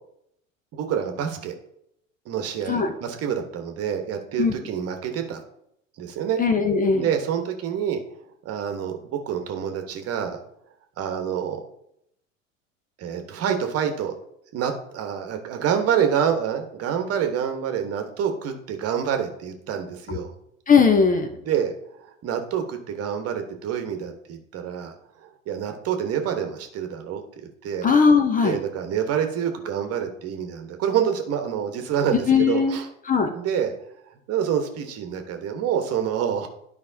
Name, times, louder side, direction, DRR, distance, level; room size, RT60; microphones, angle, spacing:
voice 1, 0.7-1.6 2.2-5.4 6.0-6.4 6.9-8.0 8.4-10.4 11.0-11.6 13.0-14.1 14.5-20.3 21.4-21.7 22.2-24.9 25.5-27.2 27.6-27.9 28.4-32.9 33.3-33.7 34.3-36.5, right 8 dB, 35° right, 6 dB, 1.3 m, -27 dB
voice 2, 6.4-7.1 20.1-20.2 20.7-21.3 27.8-28.6 32.3-32.8 33.0-33.3, left 5 dB, 20° left, 6 dB, 0.8 m, -19 dB
12.0 x 5.2 x 2.8 m, 0.77 s
figure-of-eight pair, 75°, 40 cm